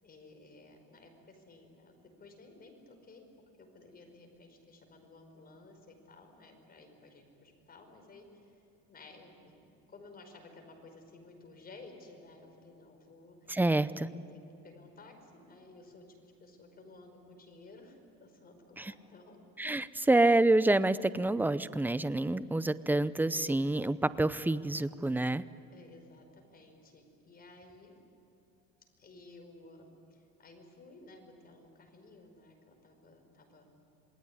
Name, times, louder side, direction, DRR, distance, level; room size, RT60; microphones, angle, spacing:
voice 1, 0.0-3.3 3.6-8.6 8.9-9.6 9.9-13.5 14.3-19.4 25.7-27.9 29.0-33.8, left 2 dB, 30° left, 4 dB, 5.4 m, -55 dB
voice 2, 13.5-14.1 18.8-18.9 19.6-25.4, right 2 dB, 5° right, 15 dB, 0.6 m, -27 dB
27.5 x 20.0 x 10.0 m, 2.8 s
cardioid pair, 130°, 32 cm